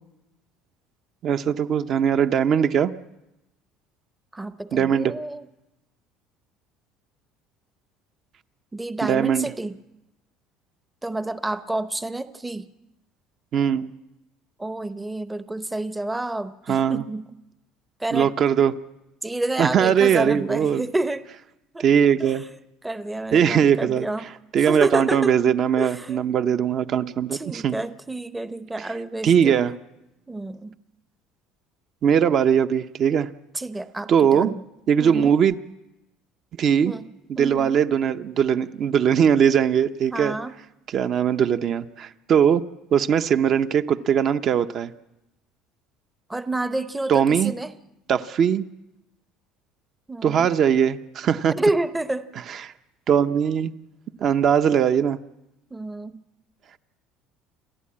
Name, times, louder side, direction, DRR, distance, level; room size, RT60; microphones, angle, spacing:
voice 1, 1.2-2.9 4.7-5.1 9.0-9.5 13.5-13.9 16.7-17.0 18.1-18.8 19.6-20.8 21.8-22.4 23.3-27.8 28.8-28.9 29.2-29.7 32.0-33.3 34.1-34.5 34.9-35.6 36.6-36.9 37.3-40.4 40.9-42.6 42.9-44.9 47.1-47.5 48.1-48.6 50.2-51.5 52.5-52.7 53.1-53.7 54.2-55.2, right 8 dB, 45° right, 10 dB, 0.8 m, -20 dB
voice 2, 4.3-5.4 8.7-9.7 11.0-12.7 14.6-17.2 18.0-18.3 19.2-21.3 21.7-21.8 22.2-22.4 22.8-24.3 24.7-25.4 25.8-26.2 27.3-29.7 30.3-30.7 33.5-34.6 35.0-35.3 36.8-37.8 40.1-40.5 46.3-47.7 50.1-50.5 51.6-52.3 55.7-56.2, right 2 dB, 10° right, 12 dB, 0.7 m, -29 dB
29.0 x 11.5 x 8.6 m, 0.93 s
cardioid pair, 130°, 0 cm